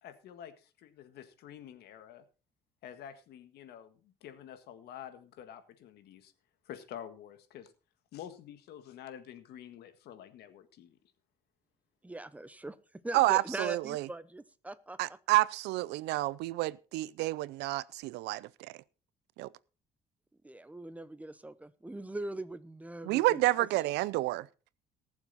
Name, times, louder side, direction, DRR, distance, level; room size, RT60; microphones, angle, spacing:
voice 1, 0.0-0.5 0.8-2.2 2.8-4.0 4.2-6.3 6.7-7.7 8.1-11.0, left 10 dB, 75° left, 1.8 m, -48 dB
voice 2, 12.0-12.8 13.0-15.0 20.4-23.7, right 1 dB, 10° right, 0.9 m, -41 dB
voice 3, 13.1-14.1 15.0-18.7 19.4-19.5 23.0-24.5, right 18 dB, 85° right, 0.6 m, -29 dB
19.0 x 7.2 x 4.2 m
cardioid pair, 110°, 17 cm